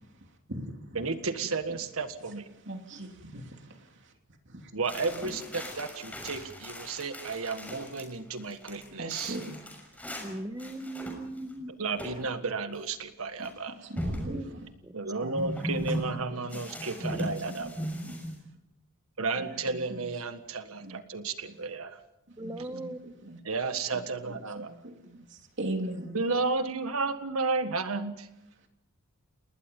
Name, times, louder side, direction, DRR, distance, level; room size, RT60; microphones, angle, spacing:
voice 1, 1.0-2.5 4.7-9.4 11.8-13.9 14.9-17.8 19.2-22.0 23.5-24.7 26.1-28.3, right 4 dB, 80° right, 1.7 m, -32 dB
voice 2, 2.7-3.8 4.5-4.7 9.0-9.6 13.4-14.4 15.2-16.6 17.2-17.7 18.0-18.2 19.4-20.1 20.8-21.0 22.4-22.9 23.2-23.4 23.9-26.2, right 1 dB, 55° right, 2.9 m, -40 dB
sound 1, 4.8-8.0 8.4-10.3 10.6-11.5 12.0-12.2 12.5-12.6 13.4-13.5 14.0-14.4 15.3-16.0 16.5-18.4, equal, 5° left, 6.3 m, -37 dB
voice 3, 10.2-11.7 14.1-14.5 14.8-14.9 22.4-23.0, right 1 dB, 15° right, 1.2 m, -39 dB
30.0 x 20.0 x 5.4 m
head